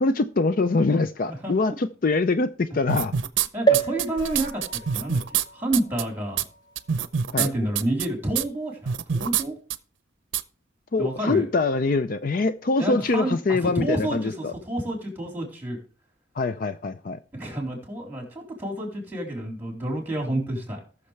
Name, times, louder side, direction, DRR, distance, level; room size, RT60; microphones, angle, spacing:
voice 1, 0.0-3.1 7.3-7.5 10.9-14.5 16.4-17.2, left 3 dB, 45° left, 11 dB, 0.4 m, -24 dB
voice 2, 1.3-1.8 3.5-4.6 4.9-5.2 5.5-6.4 7.4-9.5 11.0-11.4 12.8-15.8 17.3-20.8, right 1 dB, 10° right, 0 dB, 3.8 m, -29 dB
sound 1, 2.9-3.5 3.7-5.4 5.7-6.0 6.4-6.5 6.8-7.5 7.8-8.1 8.4-8.5 8.9-9.4 9.7-9.8 10.3-10.4, right 8 dB, 75° right, 0.6 m, -25 dB
sound 2, 3.7-7.3 7.9-8.0 8.2-8.3, right 6 dB, 20° left, 1.0 m, -29 dB
19.0 x 6.7 x 3.3 m, 0.38 s
head